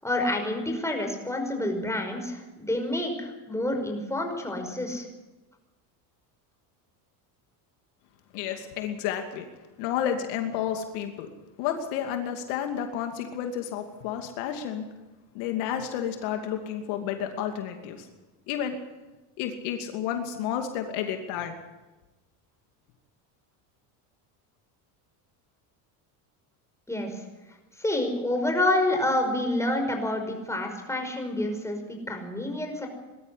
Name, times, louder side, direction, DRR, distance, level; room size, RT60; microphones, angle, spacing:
voice 1, 0.0-5.1 26.9-27.2 27.8-32.9, left 1 dB, 5° left, 3 dB, 5.4 m, -28 dB
voice 2, 8.3-9.5 9.8-11.3 11.6-14.9 15.3-18.1 18.5-18.8 19.4-21.6, left 9 dB, 80° left, 5 dB, 2.7 m, -31 dB
20.5 x 13.0 x 10.0 m, 1.1 s
supercardioid pair, 105°, 49 cm